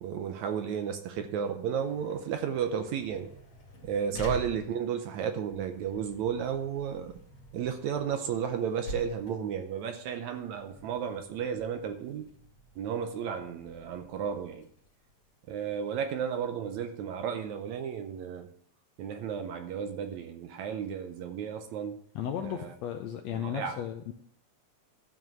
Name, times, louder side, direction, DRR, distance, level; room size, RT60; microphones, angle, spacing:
voice 1, 0.0-3.3 3.8-7.1 7.5-12.3 12.8-14.7 15.5-18.5 19.0-22.0 22.4-22.7 23.3-23.8, right 7 dB, 75° right, 7 dB, 1.9 m, -33 dB
sound 1, 1.6-16.8, right 1 dB, 50° left, 3.4 m, -47 dB
voice 2, 22.1-24.1, left 9 dB, 80° left, 5 dB, 1.6 m, -35 dB
12.5 x 5.3 x 6.2 m, 0.65 s
omnidirectional pair, 3.8 m